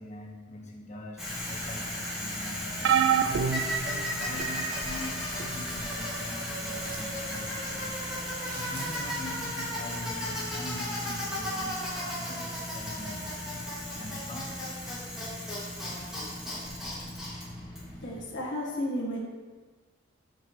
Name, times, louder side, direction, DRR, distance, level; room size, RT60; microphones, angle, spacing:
voice 1, 0.0-3.3 3.8-8.0 8.5-14.5, left 1 dB, 35° left, -1 dB, 1.2 m, -43 dB
Bicycle, 1.2-18.2, equal, 5° right, 2.2 m, -35 dB
sound 1, 2.8-4.6 5.4-5.6 6.9-7.0, right 8 dB, 65° right, 0.4 m, -27 dB
sound 2, 6.7-7.3 8.3-9.3 11.9-12.0 12.5-13.2 13.5-14.7 15.1-15.2, right 3 dB, 45° right, 0.9 m, -47 dB
voice 2, 18.0-19.2, left 1 dB, 65° left, -5 dB, 1.5 m, -32 dB
8.2 x 7.1 x 3.1 m, 1.4 s
head